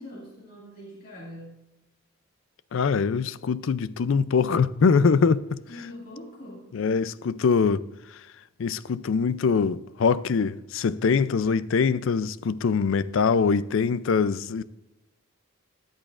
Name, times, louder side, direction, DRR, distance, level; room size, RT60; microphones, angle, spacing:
voice 1, 0.0-1.6 5.7-6.7, left 1 dB, 40° left, 2.2 m, -42 dB
voice 2, 2.7-5.6 6.7-8.2 8.6-14.6, left 5 dB, 60° left, 0.4 m, -23 dB
13.5 x 10.5 x 2.5 m
head